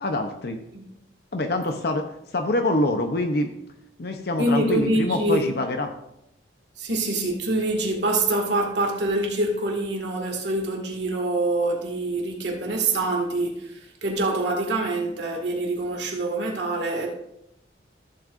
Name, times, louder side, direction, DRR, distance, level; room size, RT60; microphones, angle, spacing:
voice 1, 0.0-0.6 1.3-2.0 2.3-3.5 4.0-5.9, left 2 dB, 55° left, 0.7 m, -25 dB
voice 2, 4.4-5.5 6.8-17.1, right 2 dB, 70° right, 2.0 m, -25 dB
14.0 x 7.7 x 2.5 m
head